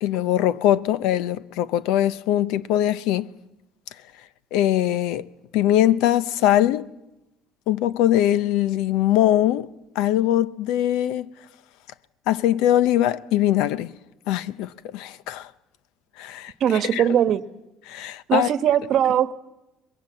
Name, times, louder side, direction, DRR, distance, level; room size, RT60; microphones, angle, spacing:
voice 1, 0.0-3.3 4.5-5.2 5.5-6.9 7.7-11.3 12.3-13.9 14.3-15.5 16.2-16.5 16.9-17.0 17.9-18.5, left 12 dB, 85° left, 0.8 m, -21 dB
voice 2, 16.6-17.4 18.3-19.3, right 10 dB, 55° right, 1.1 m, -20 dB
23.0 x 21.5 x 7.5 m
cardioid pair, 130°, 0 cm